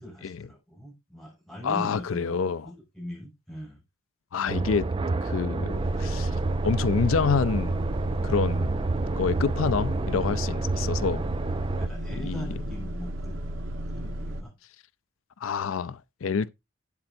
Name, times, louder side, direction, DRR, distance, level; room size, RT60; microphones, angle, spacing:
voice 1, 0.0-3.8 5.5-5.7 11.8-13.4 13.8-14.6, equal, ahead, 5.8 m, -41 dB
voice 2, 1.6-2.7 4.3-4.9 5.2-6.4 6.6-7.8 8.2-8.7 9.2-11.3 12.3-12.5 15.4-16.5, left 5 dB, 90° left, 0.5 m, -27 dB
sound 1, 4.5-11.9, right 3 dB, 25° right, 0.4 m, -29 dB
sound 2, 5.7-14.4, equal, 70° right, 1.3 m, -34 dB
12.0 x 8.8 x 2.6 m
head